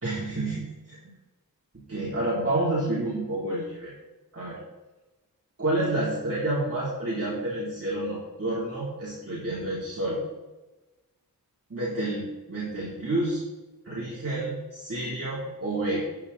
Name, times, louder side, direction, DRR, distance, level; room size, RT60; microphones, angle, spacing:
voice 1, 0.0-1.0 1.7-3.9 4.3-4.6 5.6-10.2 11.7-13.4 13.8-16.0, right 1 dB, 40° right, -7 dB, 3.5 m, -29 dB
14.5 x 8.7 x 4.2 m, 1.1 s
wide cardioid pair, 80°, 37 cm